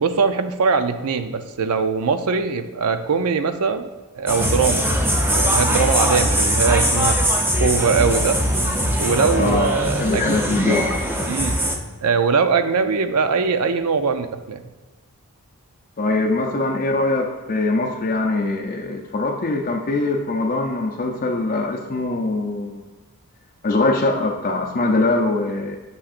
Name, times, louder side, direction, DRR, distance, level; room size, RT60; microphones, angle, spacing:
voice 1, 0.0-3.9 4.2-5.0 5.3-7.2 7.6-8.4 9.0-10.4 11.3-11.6 12.0-14.6, right 5 dB, 85° right, 9 dB, 0.5 m, -21 dB
sound 1, 4.3-11.8, equal, 10° right, 0.6 m, -21 dB
voice 2, 9.3-10.8 16.0-22.8 23.6-25.8, left 2 dB, 40° left, 0 dB, 0.5 m, -22 dB
8.7 x 6.3 x 2.5 m, 1.2 s
head